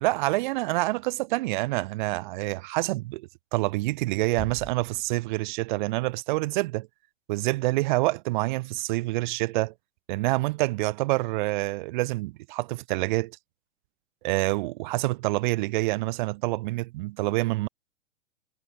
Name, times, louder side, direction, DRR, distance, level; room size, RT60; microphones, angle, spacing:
voice 1, 0.0-6.9 7.3-9.7 10.1-13.4 14.2-17.7, right 21 dB, 35° right, 1.2 m, -27 dB
Bass drum, 4.4-5.8, equal, ahead, 1.7 m, -43 dB
figure-of-eight pair, 115°, 39 cm